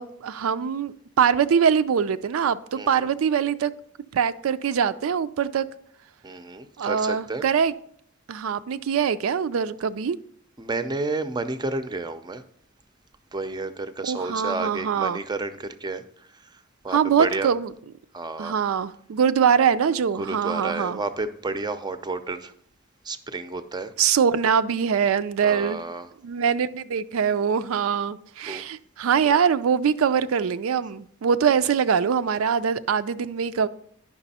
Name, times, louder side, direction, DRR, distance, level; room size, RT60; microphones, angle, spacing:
voice 1, 0.0-3.7 4.1-5.7 6.8-7.7 8.3-10.2 14.0-15.2 16.9-17.7 18.4-21.0 24.0-25.8 26.2-33.7, right 7 dB, 85° right, 0.4 m, -23 dB
voice 2, 2.8-3.1 6.2-7.4 10.6-12.4 13.3-17.5 18.1-18.6 20.2-22.5 23.0-23.9 25.4-26.1 28.5-28.6, right 3 dB, 20° right, 0.5 m, -31 dB
9.9 x 5.9 x 4.1 m
head